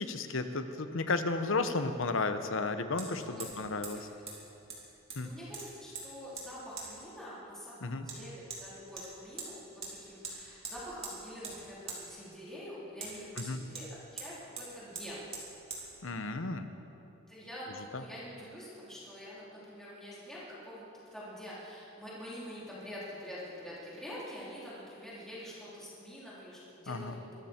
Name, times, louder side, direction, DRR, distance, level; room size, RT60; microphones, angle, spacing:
voice 1, 0.0-4.1 5.2-5.3 7.8-8.1 13.4-13.6 16.0-16.7 17.9-18.0 26.9-27.2, left 3 dB, 65° left, 9 dB, 1.0 m, -33 dB
Hammer, 1.1-1.2 3.0-3.1 3.4-3.6 3.8-3.9 4.3-4.4 4.7-5.2 5.5-6.1 6.4-6.5 6.8-6.9 8.1-8.2 8.5-8.6 9.0-9.5 9.8-9.9 10.2-10.4 10.6-11.2 11.4-11.6 11.9-12.0 13.0-13.9 14.2-14.3 14.6-14.7 15.0-15.1 15.3-15.5 15.7-15.8, right 4 dB, 30° right, 3.2 m, -42 dB
voice 2, 5.2-15.3 17.3-20.8 21.1-27.4, equal, 5° left, -9 dB, 3.6 m, -46 dB
24.0 x 13.5 x 4.5 m, 2.9 s
head